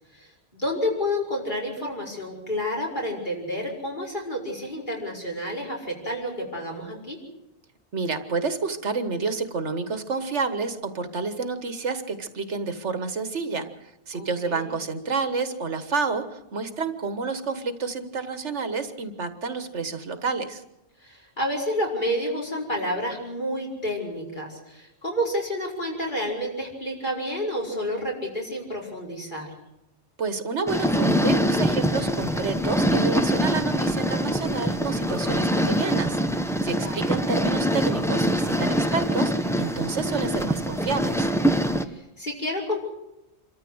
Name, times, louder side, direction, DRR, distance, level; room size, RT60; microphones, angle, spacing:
voice 1, 0.2-7.2 14.1-14.8 21.0-29.5 36.7-37.2 41.9-42.8, left 1 dB, 45° left, -2 dB, 5.5 m, -30 dB
voice 2, 7.9-13.7 14.1-20.6 30.2-41.3, right 4 dB, 85° right, 10 dB, 1.8 m, -29 dB
sound 1, 30.7-41.8, equal, 5° left, 0.9 m, -24 dB
27.0 x 13.5 x 7.9 m, 0.90 s
omnidirectional pair, 1.2 m